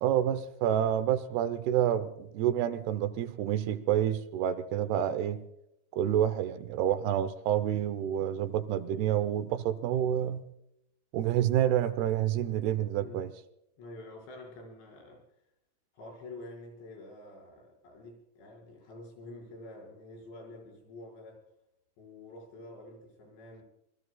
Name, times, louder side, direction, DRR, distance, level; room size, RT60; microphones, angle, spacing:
voice 1, 0.0-5.4 5.9-10.4 11.1-13.3, right 10 dB, 75° right, 13 dB, 2.6 m, -28 dB
voice 2, 13.0-13.3 13.8-15.2 15.9-21.4 22.0-23.6, left 2 dB, 70° left, 1 dB, 7.4 m, -48 dB
27.0 x 21.0 x 2.3 m, 0.80 s
omnidirectional pair, 5.3 m